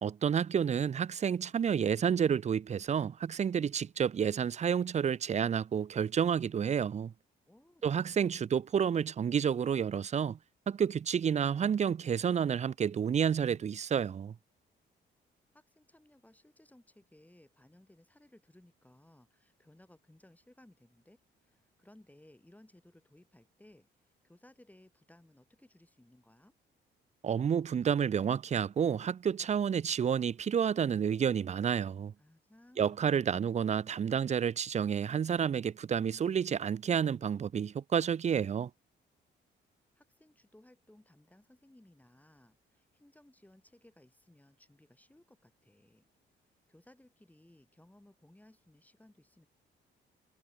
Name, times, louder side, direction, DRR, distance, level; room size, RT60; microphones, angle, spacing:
voice 1, 0.0-7.1 7.8-10.4 10.7-14.3 27.2-32.1 32.8-38.7, right 7 dB, 35° right, 0.5 m, -30 dB
voice 2, 7.5-8.4 15.5-26.5 32.2-33.5 40.0-46.1 46.7-49.5, left 1 dB, 10° left, 3.7 m, -61 dB
cardioid pair, 90°, 20 cm